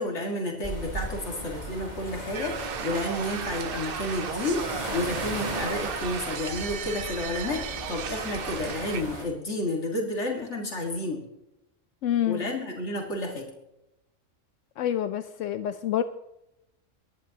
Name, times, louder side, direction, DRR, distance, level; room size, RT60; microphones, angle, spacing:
voice 1, 0.0-11.2 12.3-13.5, left 1 dB, 65° left, 0 dB, 2.4 m, -31 dB
sound 1, 0.6-9.2, right 1 dB, 35° right, 2.6 m, -36 dB
sound 2, 2.3-9.0, right 8 dB, 55° right, 0.8 m, -35 dB
voice 2, 12.0-12.4 14.8-16.0, left 10 dB, 80° left, 10 dB, 1.0 m, -27 dB
23.0 x 11.0 x 2.9 m, 0.86 s
omnidirectional pair, 1.3 m